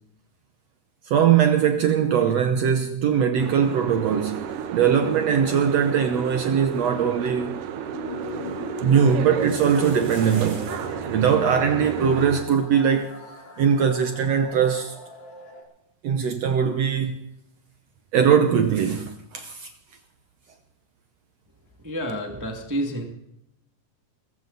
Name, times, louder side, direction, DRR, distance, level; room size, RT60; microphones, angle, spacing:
voice 1, 1.0-4.4 4.7-7.6 8.4-10.7 11.1-13.1 13.6-14.9 16.0-17.3 18.1-19.7, right 7 dB, 85° right, 1.4 m, -21 dB
Boat Water vehicle, 3.4-12.4, right 8 dB, 70° right, 2.4 m, -33 dB
sound 1, 7.9-15.6, left 4 dB, 40° left, 4.5 m, -39 dB
sound 2, 9.3-11.0 11.3-11.4 11.6-11.9 12.4-12.5 12.8-12.9 14.9-15.0, right 2 dB, 35° right, 6.5 m, -44 dB
voice 2, 21.8-23.0, equal, 10° right, 0.9 m, -29 dB
21.0 x 15.0 x 4.1 m
omnidirectional pair, 4.4 m